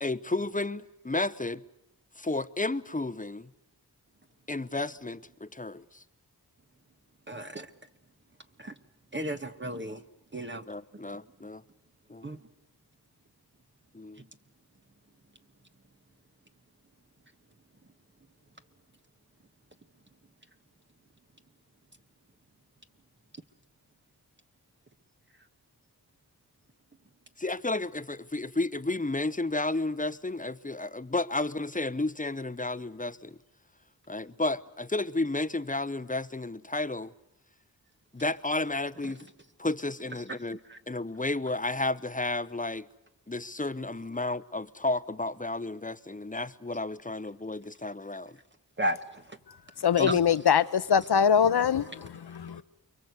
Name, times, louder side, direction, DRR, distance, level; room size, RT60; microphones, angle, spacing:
voice 1, 0.0-1.6 2.2-3.5 4.5-6.0 10.7-11.6 12.1-12.3 13.9-14.2 27.4-33.4 34.1-37.1 38.1-39.3 39.6-40.6 40.9-42.9 43.3-48.4 50.0-50.2, left 2 dB, 20° left, 1.0 m, -32 dB
voice 2, 7.3-7.7 8.6-8.7 9.1-10.0 10.3-10.6 12.2-12.4 40.7-40.8 48.8-49.4 50.1-50.2, right 1 dB, 30° right, 1.4 m, -33 dB
voice 3, 49.8-52.6, left 7 dB, 80° left, 1.0 m, -23 dB
29.5 x 22.5 x 8.2 m
cardioid pair, 45°, 39 cm